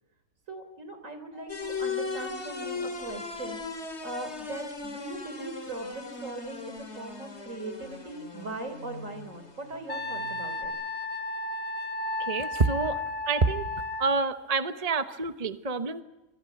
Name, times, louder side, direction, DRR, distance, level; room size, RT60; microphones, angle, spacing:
voice 1, 0.5-10.7, right 2 dB, 65° right, 8 dB, 3.8 m, -40 dB
sound 1, 1.5-10.7, left 4 dB, 50° left, 2.8 m, -38 dB
Wind instrument woodwind instrument, 9.9-14.1, left 2 dB, 25° left, 1.1 m, -33 dB
voice 2, 12.2-13.6 14.0-16.0, right 4 dB, 30° right, 9 dB, 1.0 m, -27 dB
27.0 x 24.5 x 5.8 m, 1.0 s
omnidirectional pair, 1.4 m